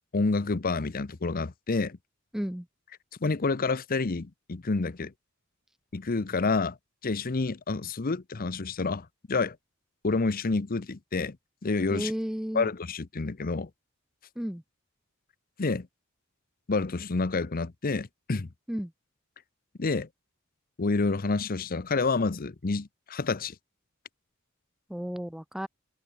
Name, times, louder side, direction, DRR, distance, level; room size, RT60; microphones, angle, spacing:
voice 1, 0.1-2.0 3.2-5.1 5.9-6.8 7.0-9.6 10.0-11.4 11.6-12.1 12.5-13.7 15.6-15.9 16.7-18.5 19.8-20.1 20.8-23.5, left 3 dB, 45° left, 0.8 m, -28 dB
voice 2, 2.3-2.7 11.9-12.7 14.4-14.6 18.7-18.9 24.9-25.7, equal, ahead, 0.4 m, -33 dB
head